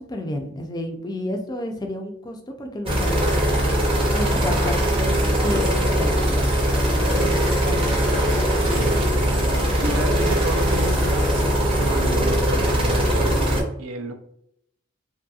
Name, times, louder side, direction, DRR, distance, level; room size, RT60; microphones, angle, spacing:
voice 1, 0.0-3.4 4.1-7.9, left 1 dB, 20° left, 3 dB, 0.3 m, -31 dB
sound 1, 2.9-13.6, equal, 25° right, 0.6 m, -21 dB
sound 2, 7.1-11.7, right 2 dB, 65° right, 1.1 m, -40 dB
voice 2, 8.6-14.1, right 2 dB, 85° right, 7 dB, 0.4 m, -33 dB
2.7 x 2.6 x 2.3 m, 0.72 s
head